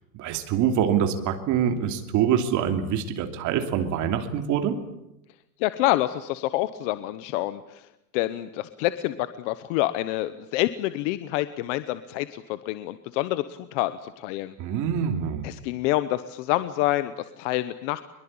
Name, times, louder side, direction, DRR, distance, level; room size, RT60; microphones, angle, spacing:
voice 1, 0.1-4.8 14.6-15.5, right 8 dB, 35° right, 6 dB, 2.8 m, -25 dB
voice 2, 5.6-7.9 8.1-14.5 15.4-18.0, left 16 dB, 45° left, 13 dB, 1.0 m, -27 dB
23.5 x 22.5 x 8.8 m, 0.87 s
supercardioid pair, 160°, 49 cm